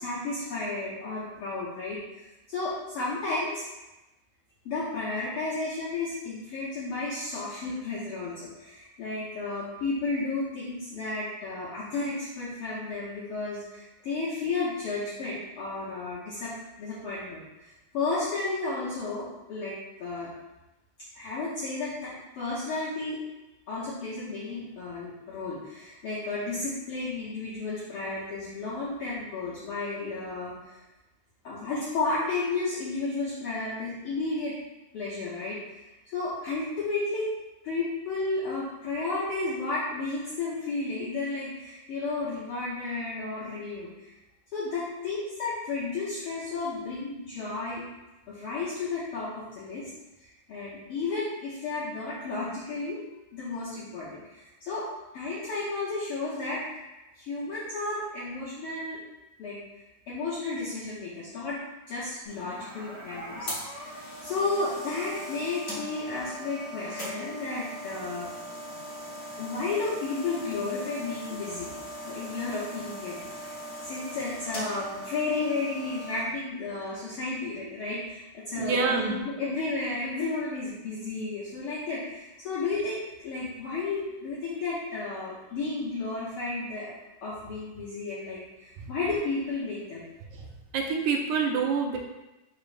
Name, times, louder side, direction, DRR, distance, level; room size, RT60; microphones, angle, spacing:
voice 1, 0.0-3.6 4.6-20.3 21.1-23.2 23.7-30.8 31.4-34.5 34.9-35.8 36.1-37.3 37.6-44.1 44.5-47.9 48.3-49.9 50.5-53.0 53.3-54.9 55.1-56.6 57.2-59.0 59.4-59.6 60.1-61.6 61.9-68.3 69.4-71.7 72.0-73.5 73.8-86.9 87.2-90.0, left 3 dB, 75° left, -9 dB, 1.3 m, -33 dB
sound 1, 62.2-76.2, equal, 60° left, 0.6 m, -39 dB
voice 2, 78.6-79.2 90.7-92.0, right 5 dB, 80° right, 2 dB, 1.9 m, -26 dB
4.9 x 2.0 x 4.7 m, 1.0 s
omnidirectional pair, 3.5 m